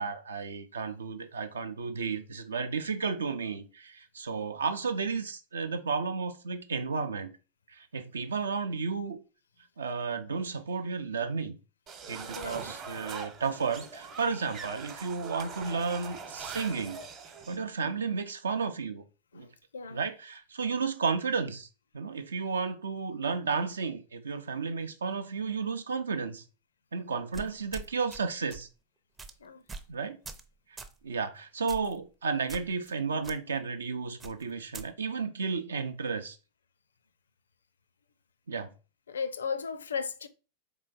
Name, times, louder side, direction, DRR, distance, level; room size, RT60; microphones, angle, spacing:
voice 1, 0.0-7.3 7.7-9.2 9.8-11.6 12.1-17.0 17.5-19.0 19.3-19.5 19.9-21.7 21.9-26.4 26.9-28.7 29.9-30.2 31.0-36.4 38.5-38.7, right 5 dB, 70° right, 0.5 m, -33 dB
sound 1, 11.9-17.6, right 5 dB, 35° right, 0.9 m, -42 dB
voice 2, 12.4-12.7 19.3-20.0 29.4-29.6 39.1-40.3, left 6 dB, 70° left, 0.4 m, -36 dB
sound 2, 27.3-28.2 28.5-28.7 29.2-29.3 29.7-29.9 30.2-30.5 30.8-31.0 31.7-32.0 32.5-32.9 33.2-33.4 34.2-34.9, right 3 dB, 15° right, 0.5 m, -43 dB
3.9 x 3.2 x 3.9 m
figure-of-eight pair, 90°, 0 cm